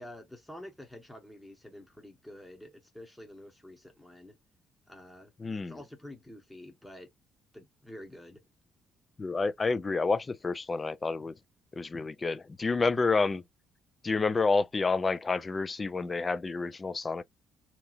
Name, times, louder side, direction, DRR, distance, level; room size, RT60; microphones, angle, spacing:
voice 1, 0.0-4.4 4.9-5.3 5.7-7.1 7.5-8.4, left 1 dB, 5° left, 1.0 m, -48 dB
voice 2, 5.4-5.8 9.2-11.3 11.7-13.4 14.0-17.2, left 4 dB, 30° left, 0.4 m, -29 dB
2.9 x 2.7 x 2.4 m
figure-of-eight pair, 45°, 0 cm